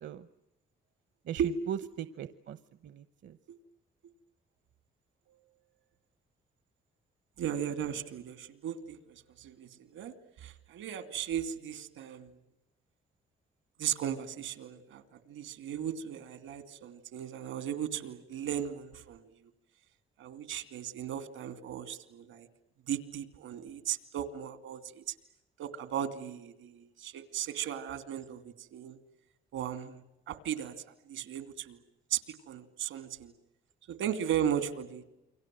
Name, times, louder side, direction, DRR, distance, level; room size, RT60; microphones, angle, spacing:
voice 1, 1.3-2.6 2.8-3.4, right 9 dB, 65° right, 14 dB, 1.0 m, -39 dB
voice 2, 7.4-10.1 10.4-12.3 13.8-19.3 20.2-22.5 22.9-25.1 25.6-29.0 29.5-30.0 30.3-31.8 32.1-33.3 33.9-35.0, right 9 dB, 85° right, 11 dB, 2.7 m, -36 dB
29.0 x 24.0 x 7.7 m, 0.91 s
cardioid pair, 90°, 20 cm